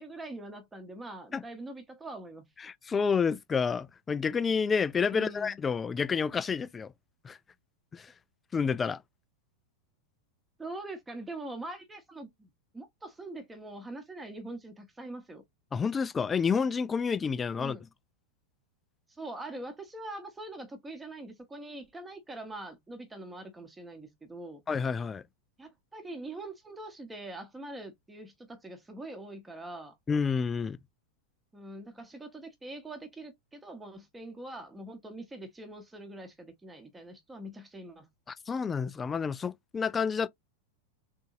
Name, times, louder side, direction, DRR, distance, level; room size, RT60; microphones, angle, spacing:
voice 1, 0.0-2.5 5.0-5.6 10.6-12.5 12.7-15.4 17.6-17.8 19.1-24.6 25.6-30.0 31.5-38.1, right 2 dB, 10° right, 1.0 m, -43 dB
voice 2, 2.6-6.9 7.2-7.4 7.9-8.1 8.5-9.0 15.7-17.8 24.7-25.2 30.1-30.8 38.5-40.3, left 6 dB, 20° left, 0.3 m, -29 dB
3.8 x 3.6 x 2.6 m
figure-of-eight pair, 90°, 0 cm